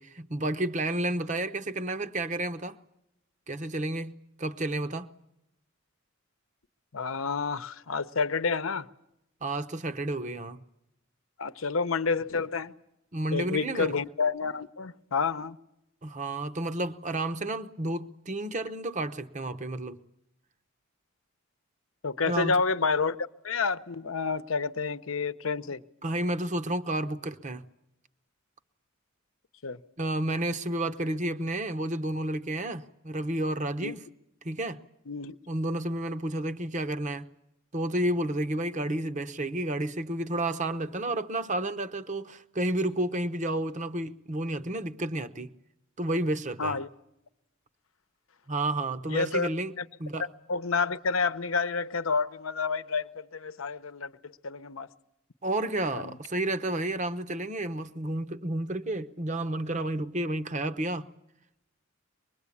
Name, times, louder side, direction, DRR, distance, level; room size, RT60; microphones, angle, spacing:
voice 1, 0.0-2.8 3.5-4.1 4.4-5.1 9.4-10.6 13.1-13.9 16.0-20.0 22.2-22.6 26.0-27.7 30.0-34.0 34.4-34.8 35.5-37.3 37.7-45.5 46.0-46.8 48.5-49.7 50.0-50.3 55.4-61.1, right 1 dB, 35° right, 0.9 m, -31 dB
voice 2, 6.9-8.9 11.4-12.7 13.3-15.6 22.0-23.2 23.4-25.8 29.6-29.8 33.8-34.0 35.1-35.4 46.6-46.9 49.1-49.5 49.8-49.9 50.5-54.9 55.9-56.1, left 4 dB, 75° left, 0.8 m, -29 dB
24.5 x 21.0 x 8.5 m
head